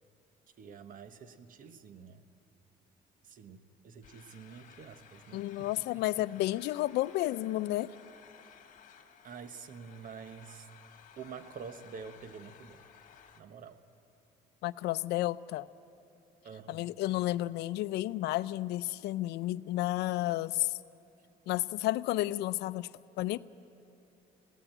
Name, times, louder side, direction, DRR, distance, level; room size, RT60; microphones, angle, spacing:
voice 1, 0.6-2.2 3.2-6.0 9.2-10.7 11.2-12.8 13.4-13.8 16.4-16.9, right 6 dB, 55° right, 11 dB, 1.2 m, -48 dB
sound 1, 4.0-13.4, left 8 dB, 50° left, 1.7 m, -57 dB
voice 2, 5.3-7.9 14.6-15.7 16.7-20.8 21.5-22.9 23.2-23.4, left 16 dB, 80° left, 16 dB, 0.5 m, -31 dB
21.5 x 17.0 x 9.0 m, 3.0 s
cardioid pair, 110°, 17 cm